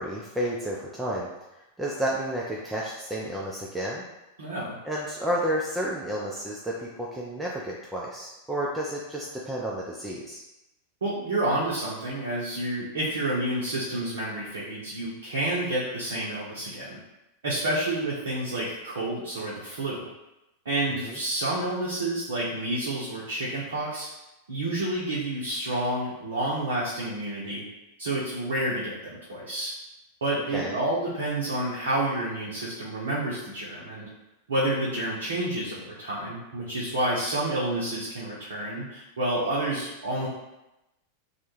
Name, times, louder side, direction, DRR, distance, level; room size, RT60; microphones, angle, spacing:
voice 1, 0.0-4.0 4.8-10.4 21.0-21.2 30.5-30.8, right 1 dB, 5° right, -4 dB, 0.3 m, -31 dB
voice 2, 4.4-4.8 11.0-17.0 17.4-20.1 20.6-24.1 24.5-27.6 28.0-29.7 30.2-34.1 34.5-40.3, right 1 dB, 65° right, -7 dB, 0.5 m, -29 dB
2.1 x 2.0 x 3.0 m, 0.95 s
figure-of-eight pair, 90°, 0 cm